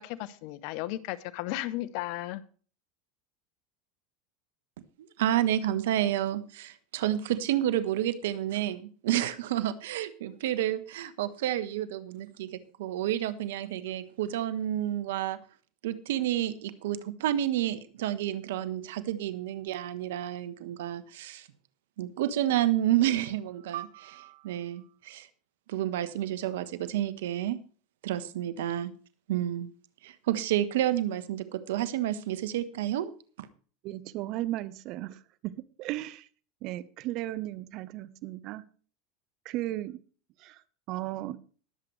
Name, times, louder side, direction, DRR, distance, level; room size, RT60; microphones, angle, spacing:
voice 1, 0.0-2.4, left 16 dB, 60° left, 0.9 m, -35 dB
voice 2, 5.2-12.5 12.8-15.4 15.8-21.5 22.0-25.3 25.7-27.6 28.0-28.9 29.3-29.7 30.0-33.1 33.4-33.5, right 12 dB, 75° right, 1.2 m, -30 dB
voice 3, 33.8-36.3 36.6-38.7 39.4-40.0 40.4-40.6 40.9-41.4, right 15 dB, 55° right, 0.9 m, -35 dB
20.5 x 7.8 x 3.3 m
hypercardioid pair, 100°, 0 cm